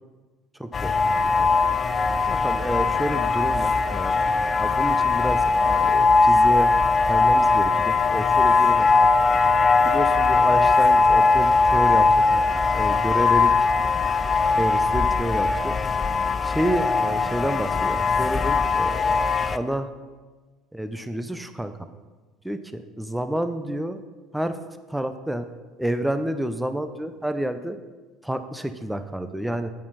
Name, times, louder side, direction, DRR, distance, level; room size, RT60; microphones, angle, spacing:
voice 1, 0.6-1.0 1.4-1.5 2.3-4.1 4.6-9.1 9.8-12.4 12.7-13.5 14.5-15.8 16.4-19.2 19.5-19.9 20.7-21.7 22.4-24.0 24.3-24.6 24.9-25.5 25.8-27.8 28.2-29.7, right 1 dB, 5° right, 10 dB, 0.7 m, -29 dB
sound 1, 0.7-19.6, left 4 dB, 30° left, 0.4 m, -20 dB
9.0 x 8.4 x 4.2 m, 1.3 s
figure-of-eight pair, 65°, 0 cm